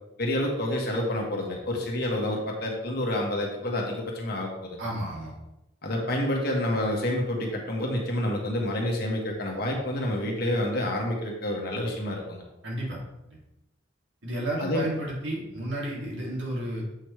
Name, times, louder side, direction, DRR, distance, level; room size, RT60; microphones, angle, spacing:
voice 1, 0.2-4.9 5.8-12.4 14.6-14.9, left 1 dB, 55° left, 0 dB, 1.5 m, -28 dB
voice 2, 4.8-5.3 12.6-13.0 13.3-13.4 14.2-16.8, right 1 dB, 70° right, -4 dB, 2.5 m, -32 dB
7.8 x 5.4 x 3.2 m, 0.90 s
head